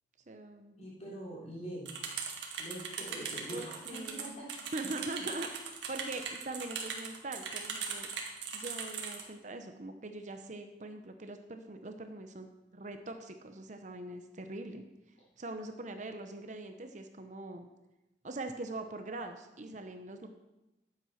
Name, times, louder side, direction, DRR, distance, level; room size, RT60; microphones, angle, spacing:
voice 1, 0.3-0.8 3.5-4.3 4.7-8.1 8.5-14.8 15.4-17.7 18.2-20.3, right 2 dB, 40° right, 6 dB, 0.8 m, -42 dB
voice 2, 0.8-2.2 2.6-4.5, right 1 dB, 35° left, -5 dB, 3.9 m, -44 dB
sound 1, 1.9-9.2, right 6 dB, 85° right, 1.9 m, -39 dB
11.5 x 7.7 x 5.7 m, 0.98 s
head